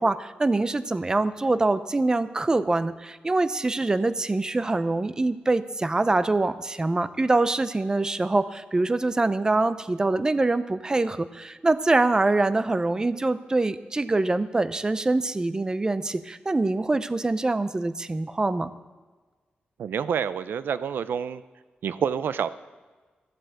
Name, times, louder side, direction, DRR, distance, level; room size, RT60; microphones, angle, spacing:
voice 1, 0.0-18.7, right 2 dB, 20° right, 13 dB, 0.5 m, -24 dB
voice 2, 19.8-21.4 21.8-22.5, right 7 dB, 85° right, 15 dB, 0.5 m, -28 dB
14.5 x 7.9 x 7.7 m, 1.4 s
wide cardioid pair, 115°, 3 cm